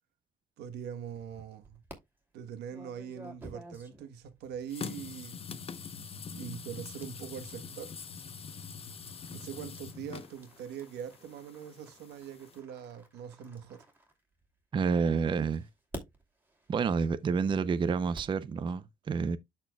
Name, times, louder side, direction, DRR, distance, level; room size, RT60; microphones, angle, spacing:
voice 1, 0.6-1.8 2.3-5.5 6.3-8.0 9.3-13.8, right 8 dB, 80° right, 1.2 m, -43 dB
sound 1, 1.1-2.0 2.7-14.7 15.4-18.4, right 1 dB, 10° right, 2.7 m, -52 dB
sound 2, 4.7-12.6, left 5 dB, 35° left, 0.9 m, -44 dB
voice 2, 14.7-15.7 16.7-19.4, right 5 dB, 30° right, 0.5 m, -29 dB
12.5 x 4.4 x 2.3 m
cardioid pair, 110°, 17 cm